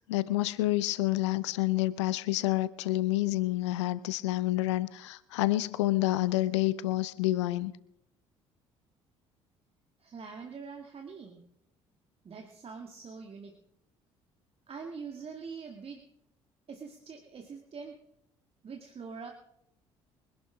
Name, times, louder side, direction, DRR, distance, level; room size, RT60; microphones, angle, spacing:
voice 1, 0.1-7.7, left 17 dB, 75° left, 18 dB, 0.6 m, -28 dB
voice 2, 10.0-11.4 12.2-13.5 14.7-16.0 16.7-18.0 18.6-19.3, right 5 dB, 40° right, 3 dB, 2.1 m, -44 dB
24.5 x 11.5 x 3.6 m, 0.75 s
figure-of-eight pair, 50°, 15 cm